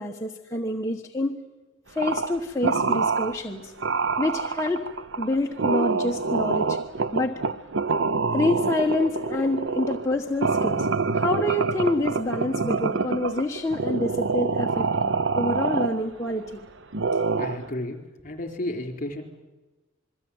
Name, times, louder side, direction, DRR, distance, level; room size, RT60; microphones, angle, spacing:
voice 1, 0.0-1.3 1.9-3.7 4.2-4.9 5.2-6.8 7.1-7.4 8.3-10.9 11.1-14.9 15.3-16.6, left 1 dB, 15° left, -1 dB, 1.3 m, -27 dB
sound 1, 2.0-2.4 2.6-3.4 3.8-16.5 16.9-17.7, right 4 dB, 70° right, 0.8 m, -26 dB
voice 2, 17.4-18.0 18.2-19.2, left 1 dB, 40° left, 5 dB, 4.3 m, -32 dB
27.5 x 22.0 x 8.8 m, 1.1 s
head